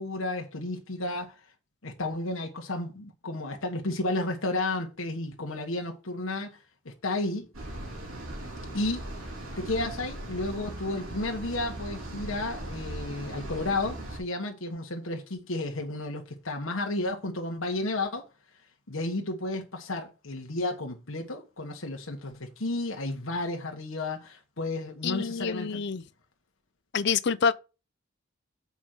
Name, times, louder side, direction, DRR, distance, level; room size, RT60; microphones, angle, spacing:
voice 1, 0.0-1.4 1.8-7.5 8.7-9.1 9.6-18.3 18.9-25.8, left 2 dB, 85° left, 1.4 m, -32 dB
sound 1, 7.5-14.2, right 1 dB, 85° right, 2.9 m, -39 dB
voice 2, 25.0-26.0 26.9-27.5, left 6 dB, 55° left, 0.5 m, -27 dB
7.1 x 5.2 x 6.2 m
head